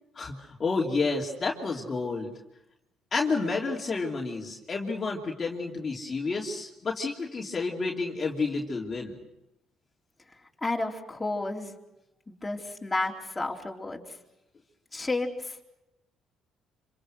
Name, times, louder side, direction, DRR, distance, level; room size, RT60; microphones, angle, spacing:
voice 1, 0.6-2.3 3.1-9.1, left 4 dB, 35° left, -1 dB, 3.0 m, -30 dB
voice 2, 10.6-11.7 12.3-14.0 14.9-15.6, left 2 dB, 15° left, 0 dB, 4.1 m, -31 dB
27.0 x 26.0 x 6.4 m, 0.89 s
cardioid pair, 85°, 0 cm